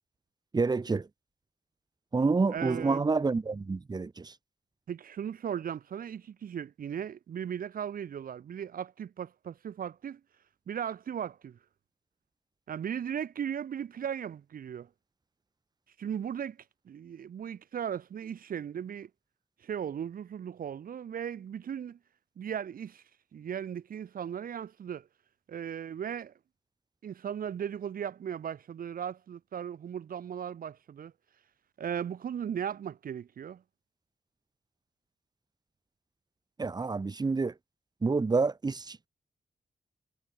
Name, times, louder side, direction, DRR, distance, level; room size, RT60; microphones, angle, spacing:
voice 1, 0.5-1.1 2.1-4.3 36.6-37.5 38.0-39.1, right 4 dB, 30° right, 4.4 m, -28 dB
voice 2, 2.5-3.1 4.9-10.2 10.7-11.6 12.7-14.9 16.0-16.6 16.8-19.1 19.6-22.0 22.4-23.0 23.3-25.1 25.5-26.3 27.0-31.1 31.8-33.6, right 8 dB, 85° right, 4.7 m, -37 dB
wide cardioid pair, 160°, 14 cm